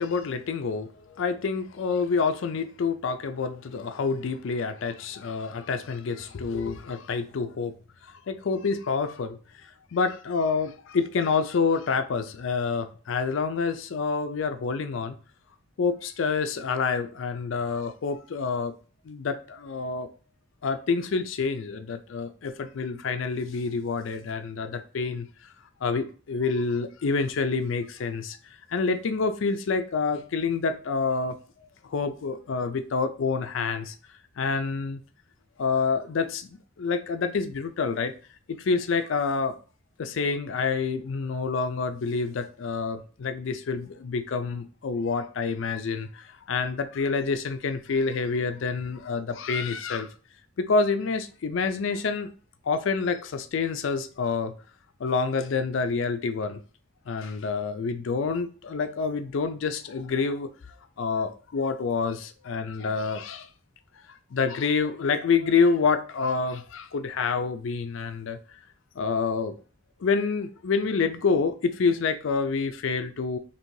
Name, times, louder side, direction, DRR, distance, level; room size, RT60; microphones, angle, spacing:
voice 1, 0.0-7.7 8.0-15.2 15.8-18.7 19.0-20.1 20.6-25.3 25.8-28.4 28.7-31.4 31.8-33.9 34.4-35.0 35.6-38.1 38.5-39.6 40.0-50.1 50.6-52.3 52.6-54.5 55.0-56.6 57.1-60.5 61.0-63.5 64.1-68.4 69.0-69.5 70.0-73.4, left 4 dB, 70° left, 0.4 m, -27 dB
4.6 x 2.9 x 2.7 m
head